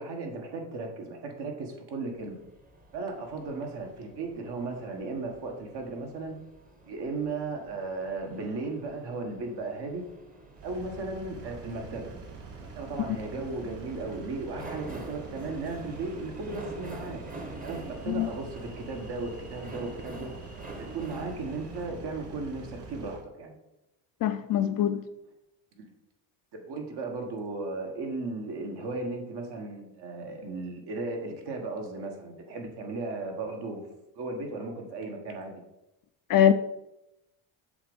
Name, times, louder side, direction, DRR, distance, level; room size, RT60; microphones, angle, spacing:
voice 1, 0.0-2.4 2.9-6.4 6.9-10.1 10.6-12.2 12.5-17.2 17.6-20.3 20.7-23.5 25.8-25.9 26.5-33.9 34.1-35.6, right 3 dB, 55° right, 1.5 m, -36 dB
sound 1, 2.1-21.9, right 1 dB, 15° right, 1.0 m, -47 dB
Engine, 10.6-23.2, right 5 dB, 80° right, 1.2 m, -45 dB
voice 2, 24.2-25.0 36.3-36.5, left 10 dB, 45° left, 0.5 m, -22 dB
6.9 x 2.6 x 5.3 m
supercardioid pair, 85°, 48 cm